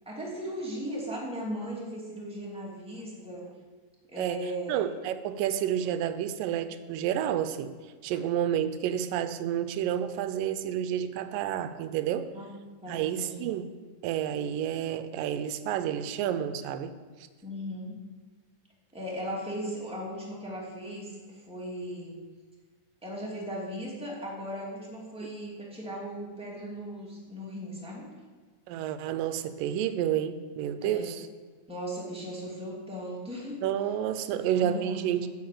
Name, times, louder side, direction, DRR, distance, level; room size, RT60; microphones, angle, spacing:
voice 1, 0.1-3.5 4.1-4.8 12.3-13.5 17.4-18.0 18.9-22.1 23.0-28.1 30.8-31.1 31.7-33.6 34.3-35.3, equal, ahead, -5 dB, 2.0 m, -37 dB
voice 2, 4.2-7.8 8.0-12.3 12.9-13.7 14.0-16.9 25.2-25.3 28.7-31.3 33.6-35.3, right 10 dB, 90° right, 11 dB, 2.3 m, -30 dB
9.5 x 7.0 x 7.8 m, 1.5 s
omnidirectional pair, 3.8 m